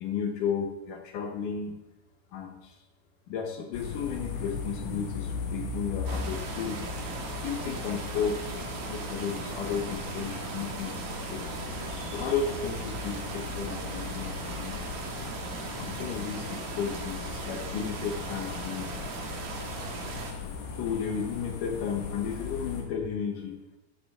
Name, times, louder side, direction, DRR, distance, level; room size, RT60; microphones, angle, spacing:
voice 1, 0.0-1.7 2.3-2.8 3.3-6.8 7.4-11.6 12.1-14.9 15.8-19.0 20.7-23.6, left 6 dB, 70° left, 3 dB, 2.0 m, -34 dB
sound 1, 3.7-22.8, left 4 dB, 90° left, 3.8 m, -38 dB
sound 2, 6.1-20.3, right 5 dB, 65° right, 3.0 m, -39 dB
12.0 x 11.0 x 3.6 m, 1.0 s
omnidirectional pair, 4.9 m